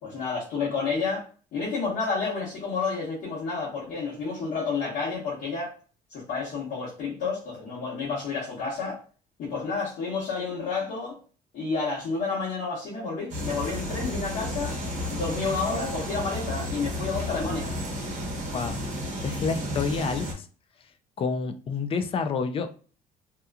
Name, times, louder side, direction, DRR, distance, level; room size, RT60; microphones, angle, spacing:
voice 1, 0.0-5.7 6.1-9.0 9.4-11.2 11.5-14.8 15.1-17.7, left 4 dB, 65° left, 1.2 m, -30 dB
sound 1, 13.3-20.3, left 1 dB, 45° right, 0.9 m, -32 dB
voice 2, 18.5-18.9 19.2-20.5 21.2-22.7, left 5 dB, 35° left, 0.4 m, -29 dB
2.8 x 2.3 x 2.3 m
cardioid pair, 110°, 17 cm